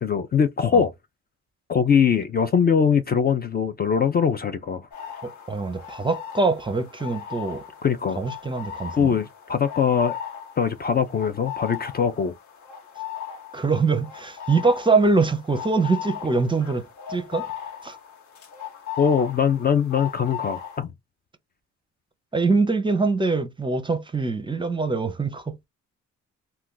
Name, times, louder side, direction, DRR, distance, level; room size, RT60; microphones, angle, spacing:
voice 1, 0.0-0.9 1.7-5.1 7.8-8.2 9.0-10.2 10.6-12.3 19.0-20.9, left 7 dB, 35° left, 0.4 m, -22 dB
sound 1, 4.9-20.8, left 9 dB, 70° left, 1.0 m, -38 dB
voice 2, 5.2-7.6 8.2-9.2 13.5-17.5 17.8-18.0 22.3-25.6, right 3 dB, 15° right, 0.5 m, -23 dB
2.4 x 2.3 x 3.7 m
cardioid pair, 90°, 30 cm